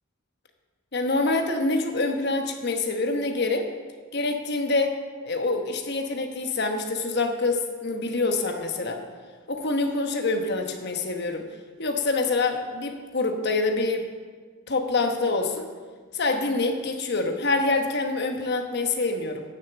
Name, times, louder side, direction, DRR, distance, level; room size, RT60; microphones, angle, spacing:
voice 1, 0.9-3.7 4.1-4.9 5.2-9.0 9.5-11.4 11.8-14.1 14.7-15.7 16.1-19.4, left 3 dB, 50° left, 5 dB, 1.1 m, -26 dB
10.0 x 6.9 x 7.4 m, 1.5 s
head